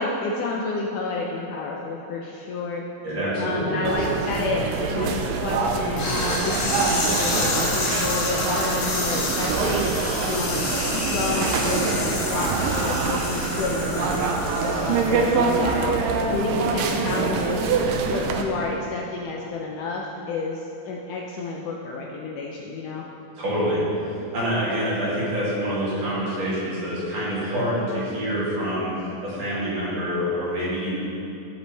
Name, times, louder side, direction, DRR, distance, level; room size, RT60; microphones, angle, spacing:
voice 1, 0.0-2.8 3.4-9.9 10.2-14.3 14.8-16.0 16.3-17.8 18.0-23.1, left 3 dB, 75° left, -1 dB, 1.9 m, -30 dB
voice 2, 3.0-4.0 23.4-28.9 29.2-30.9, equal, 45° right, -9 dB, 3.6 m, -26 dB
sound 1, 3.9-18.4, right 4 dB, 80° right, 2.2 m, -25 dB
sound 2, 6.0-15.8, left 2 dB, 60° left, 3.2 m, -29 dB
15.5 x 7.9 x 3.3 m, 2.9 s
omnidirectional pair, 4.2 m